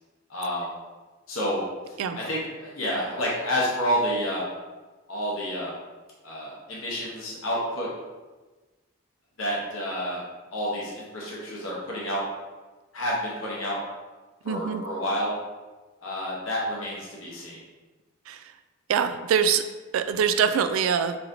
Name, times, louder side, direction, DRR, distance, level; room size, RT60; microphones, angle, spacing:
voice 1, 0.3-0.7 1.3-4.5 5.1-5.7 6.2-7.9 9.4-10.2 10.5-12.3 12.9-13.8 14.4-15.3 16.0-17.6, equal, 75° left, -5 dB, 0.9 m, -29 dB
voice 2, 14.4-14.8 18.3-18.5 18.9-19.6 19.9-21.2, right 7 dB, 75° right, 10 dB, 0.3 m, -24 dB
5.5 x 2.8 x 2.6 m, 1.2 s
head